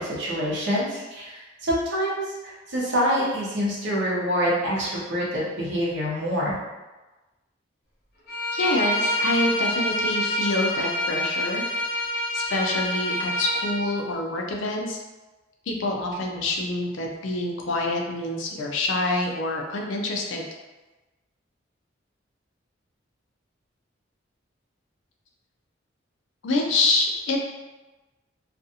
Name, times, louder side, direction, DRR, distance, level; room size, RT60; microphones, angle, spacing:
voice 1, 0.0-6.5, equal, 65° right, -5 dB, 0.8 m, -26 dB
Bowed string instrument, 8.3-13.8, left 1 dB, 50° left, 1.1 m, -26 dB
voice 2, 8.5-11.6 12.3-15.0 15.7-20.4 26.4-27.4, left 2 dB, 75° left, 1 dB, 0.5 m, -26 dB
2.5 x 2.4 x 2.7 m, 1.1 s
head